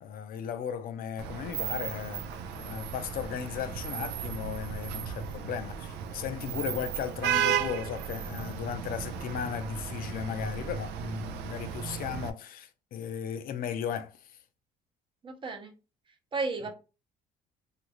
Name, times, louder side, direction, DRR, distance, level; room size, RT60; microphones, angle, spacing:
voice 1, 0.0-14.4, left 8 dB, 60° left, 0.5 m, -36 dB
Vehicle horn car horn honking / Traffic noise roadway noise, 1.2-12.3, right 8 dB, 80° right, 0.4 m, -35 dB
voice 2, 15.2-15.7 16.3-16.7, right 3 dB, 30° right, 0.8 m, -33 dB
3.0 x 2.5 x 2.9 m
cardioid pair, 110°, 17 cm